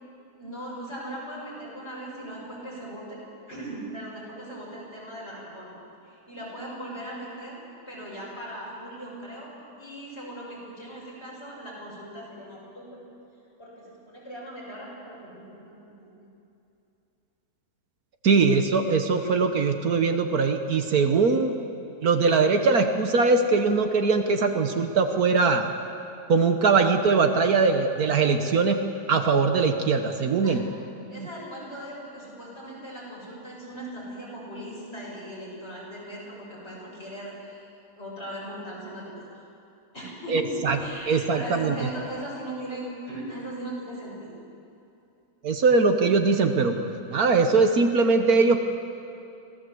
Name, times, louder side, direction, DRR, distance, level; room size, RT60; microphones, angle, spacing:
voice 1, 0.4-3.2 3.5-5.7 6.0-9.5 9.8-13.0 13.6-16.3 30.4-30.5 31.1-39.5 39.9-44.3, right 1 dB, 40° left, -5 dB, 7.9 m, -39 dB
voice 2, 18.2-21.5 22.0-25.7 26.3-28.8 29.1-30.7 31.2-31.3 40.3-40.8 41.1-41.7 45.4-48.6, right 4 dB, 65° right, 6 dB, 1.6 m, -21 dB
25.0 x 17.5 x 7.8 m, 2.7 s
omnidirectional pair, 1.8 m